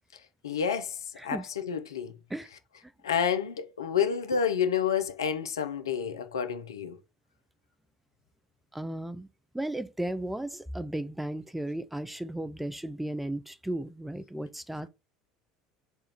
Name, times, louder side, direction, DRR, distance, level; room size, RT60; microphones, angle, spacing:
voice 1, 0.4-1.0 1.2-2.1 3.0-7.0, left 7 dB, 75° left, 0.5 m, -29 dB
voice 2, 8.7-9.3 9.5-14.9, right 1 dB, 5° right, 0.3 m, -35 dB
3.6 x 2.4 x 4.2 m
figure-of-eight pair, 70°, 2 cm